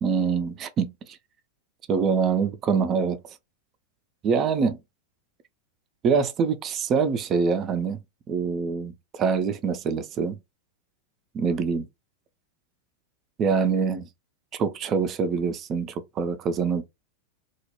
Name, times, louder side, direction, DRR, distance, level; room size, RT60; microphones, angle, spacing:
voice 1, 0.0-1.2 1.9-3.2 4.2-4.8 6.0-8.0 8.3-10.4 11.3-11.9 13.4-14.1 14.5-16.8, right 5 dB, 30° right, 0.4 m, -25 dB
2.3 x 2.0 x 2.9 m
figure-of-eight pair, 90°, 0 cm